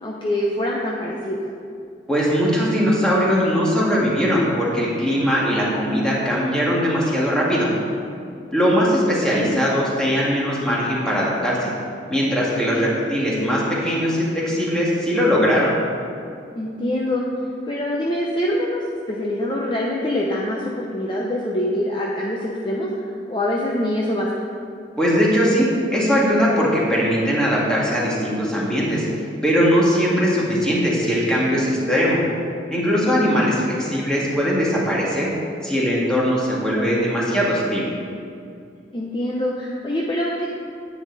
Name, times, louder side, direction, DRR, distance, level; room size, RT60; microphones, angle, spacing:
voice 1, 0.0-1.4 9.3-9.6 16.5-17.3 17.7-24.3 32.9-33.4 38.9-40.5, left 1 dB, 25° left, -3 dB, 0.8 m, -25 dB
voice 2, 2.1-7.7 8.5-11.7 12.1-15.7 25.0-29.0 29.4-32.2 32.7-35.3 35.6-37.9, equal, 5° left, -6 dB, 2.1 m, -20 dB
9.7 x 9.4 x 4.1 m, 2.4 s
head